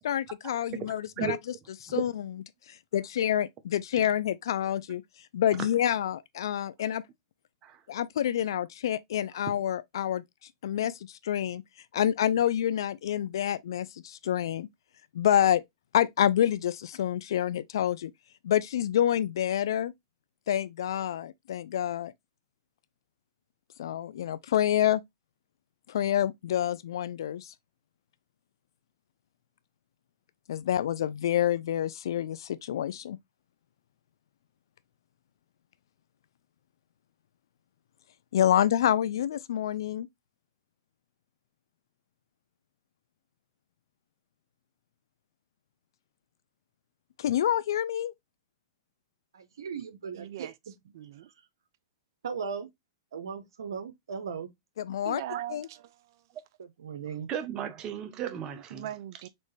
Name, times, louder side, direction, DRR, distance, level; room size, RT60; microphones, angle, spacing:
voice 1, 0.1-1.4 1.8-2.1 2.7-7.0 7.9-11.6 11.9-14.7 15.1-15.6 15.9-18.1 18.4-19.9 20.5-22.1 23.8-25.0 25.9-27.5 30.5-33.2 38.3-40.1 47.2-48.1 54.8-55.2 55.5-55.7, left 10 dB, 75° left, 0.3 m, -27 dB
voice 2, 49.3-50.5 52.2-52.7 53.1-54.5 56.8-57.3, right 6 dB, 85° right, 0.8 m, -37 dB
voice 3, 50.2-50.5 50.9-51.3 55.0-56.2 58.7-59.3, right 12 dB, 60° right, 0.4 m, -40 dB
voice 4, 57.3-58.9, right 9 dB, 30° right, 0.8 m, -34 dB
4.3 x 3.0 x 3.2 m
hypercardioid pair, 130°, 2 cm